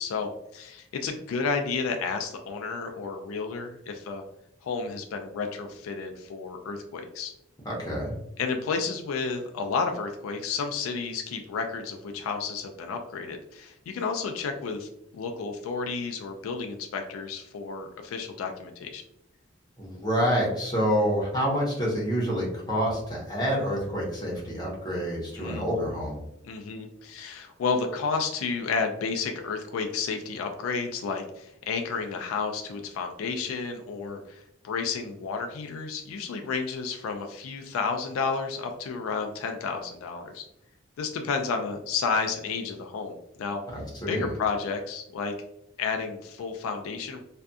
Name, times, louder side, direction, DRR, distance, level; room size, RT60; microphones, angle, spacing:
voice 1, 0.0-4.2 4.6-7.3 8.4-19.0 25.4-25.7 26.4-40.4 41.0-43.6 44.1-45.3 45.8-47.2, left 5 dB, 80° left, 4 dB, 0.3 m, -31 dB
voice 2, 7.6-8.1 19.8-26.2 43.7-44.3, equal, 20° left, -4 dB, 0.8 m, -27 dB
2.6 x 2.3 x 2.2 m, 0.81 s
head